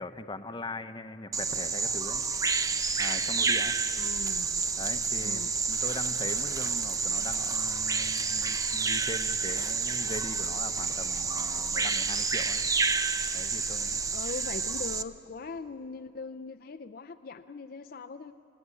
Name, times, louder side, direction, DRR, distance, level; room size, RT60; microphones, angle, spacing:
voice 1, 0.0-2.2 3.0-3.7 4.8-12.6 13.3-14.0, left 2 dB, 25° left, 9 dB, 0.8 m, -40 dB
Bird vocalization bird call bird song, 1.3-15.0, right 4 dB, 20° right, 0.5 m, -29 dB
voice 2, 4.0-4.6 5.2-5.5 14.1-18.3, left 4 dB, 50° left, 9 dB, 0.5 m, -41 dB
27.5 x 17.5 x 9.7 m, 2.9 s
head